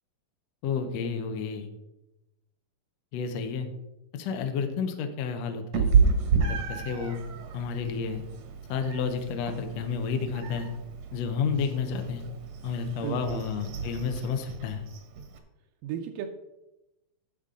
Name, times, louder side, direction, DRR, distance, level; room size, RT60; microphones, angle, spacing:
voice 1, 0.6-1.7 3.1-3.7 4.1-5.9 6.4-7.2 7.5-8.2 8.7-10.7 11.1-12.2 12.6-14.8, left 6 dB, 75° left, 6 dB, 1.6 m, -31 dB
Meow, 5.7-15.4, right 5 dB, 65° right, 1.8 m, -30 dB
voice 2, 13.0-13.4 15.8-16.3, right 9 dB, 80° right, 3 dB, 2.2 m, -34 dB
11.5 x 7.2 x 3.7 m, 0.94 s
omnidirectional pair, 4.1 m